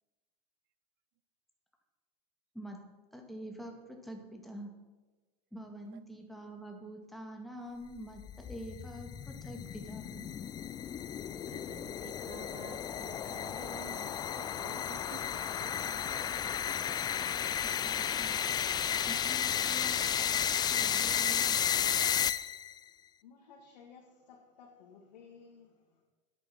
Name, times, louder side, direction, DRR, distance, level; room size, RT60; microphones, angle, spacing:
voice 1, 3.1-4.7 5.5-10.3 17.6-18.4 19.1-21.6, right 1 dB, ahead, 2 dB, 2.1 m, -46 dB
sound 1, 8.0-22.8, left 9 dB, 20° left, 0.3 m, -33 dB
voice 2, 11.5-16.4, right 15 dB, 55° right, 16 dB, 0.7 m, -52 dB
voice 3, 23.2-26.0, left 6 dB, 85° left, 0 dB, 1.9 m, -56 dB
10.5 x 9.0 x 5.9 m, 1.3 s
supercardioid pair, 125°, 21 cm